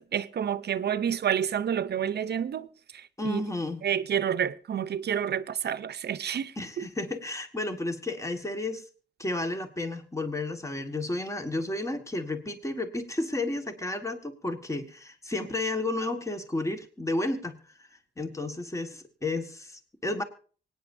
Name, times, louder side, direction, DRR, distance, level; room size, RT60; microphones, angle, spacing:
voice 1, 0.0-2.7 2.9-3.4 3.8-6.9, right 8 dB, 65° right, 0.6 m, -29 dB
voice 2, 3.2-3.8 6.6-8.8 9.2-17.9 18.2-20.2, left 2 dB, 15° left, 1.6 m, -32 dB
24.5 x 9.4 x 2.6 m
wide cardioid pair, 100°, 18 cm